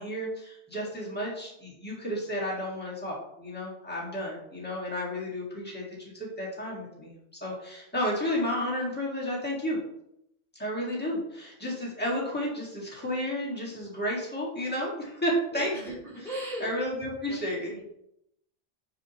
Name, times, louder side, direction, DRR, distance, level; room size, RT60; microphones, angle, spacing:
voice 1, 0.0-7.1 7.4-9.8 10.6-15.7 16.6-17.7, equal, 10° left, -5 dB, 1.7 m, -32 dB
voice 2, 15.5-16.7 17.3-17.8, equal, 65° right, -6 dB, 2.4 m, -39 dB
6.6 x 4.9 x 2.9 m, 0.80 s
omnidirectional pair, 1.1 m